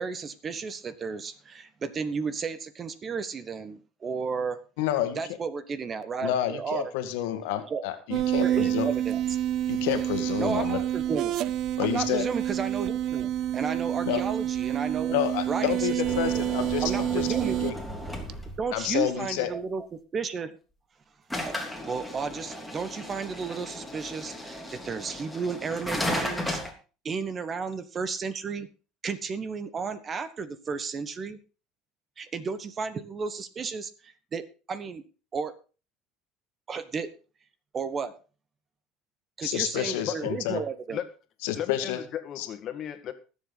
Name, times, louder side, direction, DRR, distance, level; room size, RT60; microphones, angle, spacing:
voice 1, 0.0-4.6 5.2-6.9 7.7-7.8 8.4-9.2 10.4-11.4 11.8-15.2 15.5-16.4 16.8-17.7 18.6-20.5 21.4-26.6 27.0-28.7 29.0-31.4 32.2-34.4 34.7-35.0 35.3-35.5 36.7-37.1 37.7-38.2 39.4-41.0, right 5 dB, 30° right, 1.3 m, -33 dB
voice 2, 4.8-5.2 6.2-8.9 9.7-10.8 11.8-12.3 14.1-14.2 15.1-17.7 18.7-19.5 39.4-40.6 41.4-42.0 42.4-42.5, left 12 dB, 80° left, 1.8 m, -29 dB
sound 1, 8.1-18.6, right 12 dB, 55° right, 0.6 m, -28 dB
sound 2, 16.0-18.8 21.3-26.7, left 1 dB, ahead, 3.1 m, -35 dB
voice 3, 41.5-43.1, left 10 dB, 45° left, 1.9 m, -35 dB
19.5 x 7.4 x 4.1 m
supercardioid pair, 115°, 0 cm